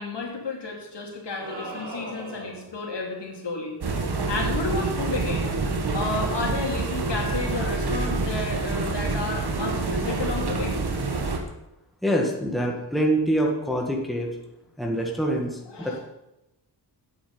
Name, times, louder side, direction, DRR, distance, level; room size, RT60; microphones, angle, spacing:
voice 1, 0.0-3.8 4.3-5.5 5.9-10.7 15.7-16.0, left 3 dB, 70° left, -1 dB, 2.8 m, -31 dB
sound 1, 1.4-2.7, right 1 dB, 85° right, 3.3 m, -38 dB
sound 2, 3.8-11.4, right 3 dB, 60° right, 1.6 m, -27 dB
voice 2, 12.0-14.3 14.8-15.5 15.8-16.0, right 1 dB, ahead, -1 dB, 1.7 m, -25 dB
8.7 x 8.6 x 5.5 m, 0.89 s
wide cardioid pair, 105°, 44 cm